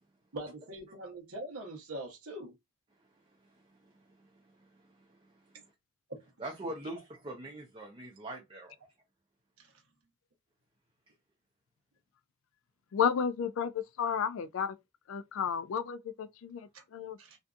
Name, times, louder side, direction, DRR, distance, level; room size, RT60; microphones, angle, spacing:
voice 1, 0.3-2.5 6.1-6.2 9.6-9.7 16.7-16.8 17.2-17.4, right 1 dB, 90° right, 0.9 m, -42 dB
voice 2, 3.3-5.7 6.4-8.8, right 1 dB, 25° right, 0.5 m, -45 dB
voice 3, 12.9-14.8 15.1-17.2, left 7 dB, 65° left, 0.3 m, -32 dB
2.6 x 2.4 x 2.3 m
head